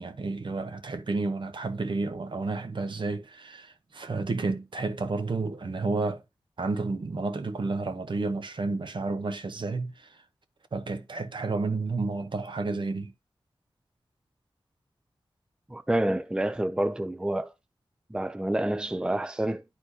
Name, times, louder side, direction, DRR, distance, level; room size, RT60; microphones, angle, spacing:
voice 1, 0.0-6.2 6.6-10.2 10.7-13.1, right 3 dB, 60° right, 1.0 m, -31 dB
voice 2, 15.7-17.5 18.1-19.6, right 1 dB, 10° right, 0.4 m, -28 dB
9.9 x 4.3 x 2.8 m
wide cardioid pair, 65°, 9 cm